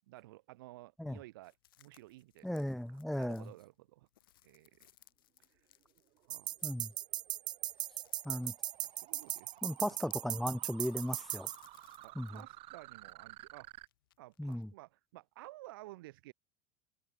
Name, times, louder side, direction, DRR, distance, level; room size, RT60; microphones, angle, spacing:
voice 1, 0.1-2.6 3.1-4.1 4.4-4.9 6.3-6.6 8.3-8.5 9.0-9.6 12.0-13.7 14.2-16.3, right 18 dB, 80° right, 3.5 m, -54 dB
sound 1, 1.4-10.3 10.6-12.5 12.8-14.7, left 14 dB, 85° left, 6.8 m, -66 dB
voice 2, 2.4-3.5 6.6-6.9 8.2-8.5 9.6-11.5 12.2-12.4 14.4-14.7, left 1 dB, ahead, 0.4 m, -36 dB
sound 2, 5.8-13.9, right 17 dB, 55° right, 6.0 m, -55 dB
sound 3, 6.3-11.5, right 12 dB, 40° right, 0.6 m, -37 dB
supercardioid pair, 100°, 11 cm